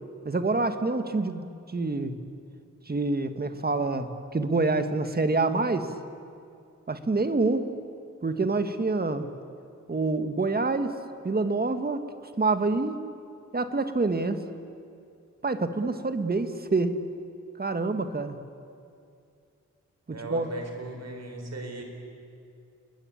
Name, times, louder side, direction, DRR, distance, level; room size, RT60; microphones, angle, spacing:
voice 1, 0.2-2.2 2.9-5.9 6.9-7.7 8.2-9.3 9.9-10.9 11.2-12.1 12.4-13.0 13.5-14.4 15.4-17.0 17.6-18.4 20.1-20.5, right 3 dB, 30° right, 9 dB, 1.6 m, -27 dB
voice 2, 20.1-21.8, right 2 dB, 60° right, 3 dB, 5.0 m, -37 dB
30.0 x 21.0 x 8.7 m, 2.5 s
wide cardioid pair, 125°, 30 cm